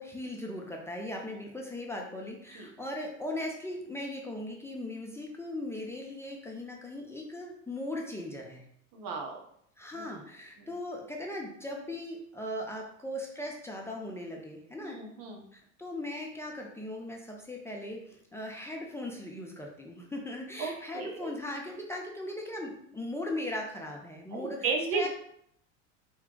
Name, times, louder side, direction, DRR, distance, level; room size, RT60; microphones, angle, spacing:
voice 1, 0.0-8.7 9.8-15.0 15.5-25.1, left 1 dB, 5° left, -1 dB, 0.6 m, -38 dB
voice 2, 8.9-9.4 9.9-10.0 14.8-15.4 20.6-21.3 24.3-25.1, right 4 dB, 60° right, 2 dB, 1.0 m, -34 dB
4.3 x 2.4 x 3.8 m, 0.70 s
supercardioid pair, 90°, 38 cm